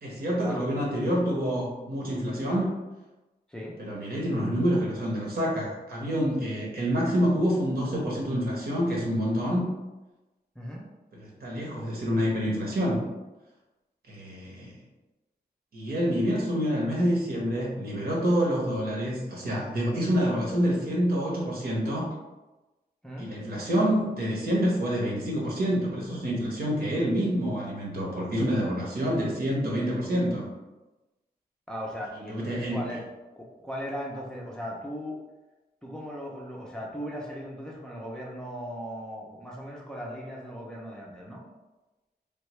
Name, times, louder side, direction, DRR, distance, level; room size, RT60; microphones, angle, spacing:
voice 1, 0.0-2.7 3.8-9.7 11.1-13.0 14.1-14.8 15.7-22.1 23.2-30.5 32.3-32.8, equal, 65° right, -3 dB, 1.0 m, -27 dB
voice 2, 3.5-4.1 10.6-10.8 23.0-23.3 31.7-33.1 33.3-35.2 35.8-41.4, equal, 5° left, -3 dB, 0.5 m, -38 dB
3.4 x 2.3 x 3.1 m, 1.1 s
wide cardioid pair, 135°, 17 cm